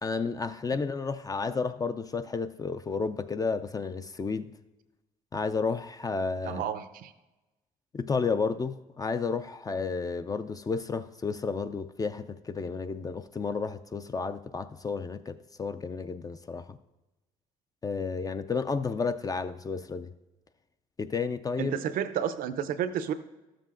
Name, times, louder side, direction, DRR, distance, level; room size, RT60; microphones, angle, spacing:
voice 1, 0.0-4.5 5.3-6.6 7.9-16.8 17.8-20.1 21.0-21.8, left 4 dB, 25° left, 0.3 m, -32 dB
voice 2, 6.4-7.1 21.6-23.1, right 9 dB, 70° right, 0.6 m, -31 dB
12.5 x 7.6 x 2.5 m
supercardioid pair, 75°, 15 cm